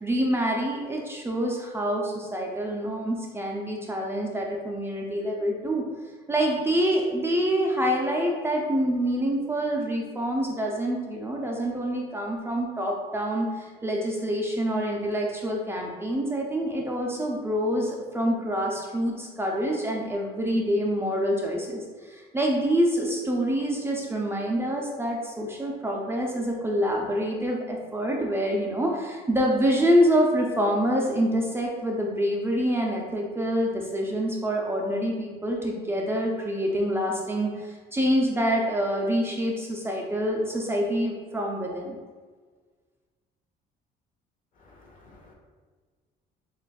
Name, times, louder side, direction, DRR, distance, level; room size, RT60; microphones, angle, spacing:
voice 1, 0.0-5.8 6.3-42.0, equal, 15° right, -1 dB, 0.5 m, -26 dB
voice 2, 44.6-45.3, left 2 dB, 55° left, -1 dB, 1.1 m, -53 dB
6.6 x 2.5 x 2.3 m, 1.5 s
cardioid pair, 110°, 17 cm